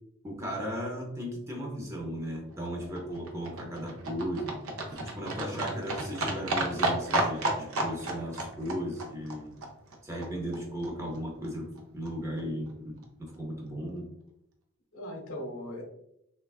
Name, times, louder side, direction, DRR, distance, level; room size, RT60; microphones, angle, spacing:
voice 1, 0.2-4.6 5.0-9.6 10.0-14.1, equal, 15° right, -1 dB, 0.6 m, -36 dB
Livestock farm animals working animals, 2.3-10.6 10.8-10.9 11.1-11.2 11.4-11.5 11.8-11.9 12.1-12.2 12.4-12.5 12.7-12.8 13.0-13.1, right 2 dB, 80° right, 0.5 m, -33 dB
voice 2, 4.9-5.5 14.9-15.8, left 1 dB, 80° left, 0 dB, 0.8 m, -41 dB
3.4 x 2.3 x 2.3 m, 0.79 s
head